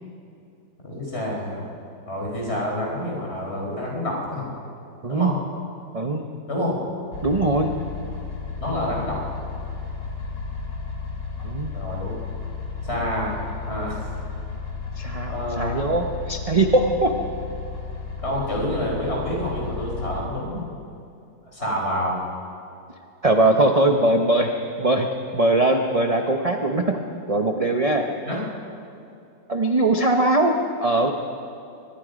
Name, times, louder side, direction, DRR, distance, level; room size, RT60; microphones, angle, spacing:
voice 1, 0.8-1.7 2.1-4.5 5.1-5.3 6.5-6.8 8.6-9.2 11.7-12.2 12.8-13.4 13.6-14.1 15.3-15.8 18.2-20.6 21.5-22.2 28.3-28.4, left 1 dB, 30° left, -2 dB, 5.0 m, -28 dB
voice 2, 5.9-6.3 7.2-7.8 11.4-11.7 15.0-17.2 23.2-24.5 24.8-27.0 27.3-28.1 29.5-30.5 30.8-31.1, right 2 dB, 30° right, 3 dB, 0.6 m, -21 dB
sound 1, 7.1-20.2, left 5 dB, 65° left, 3.3 m, -33 dB
24.0 x 21.0 x 5.2 m, 2.6 s
omnidirectional pair, 2.1 m